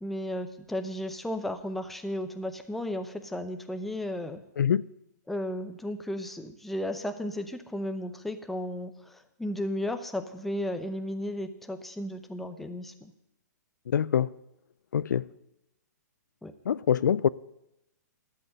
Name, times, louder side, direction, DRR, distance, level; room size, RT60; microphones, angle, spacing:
voice 1, 0.0-4.4 5.3-13.1 16.4-16.5, left 1 dB, ahead, 0.6 m, -34 dB
voice 2, 4.6-4.9 13.9-14.3 14.9-15.3 16.7-17.3, left 8 dB, 80° left, 0.4 m, -24 dB
12.0 x 8.0 x 9.8 m
hypercardioid pair, 160°, 10 cm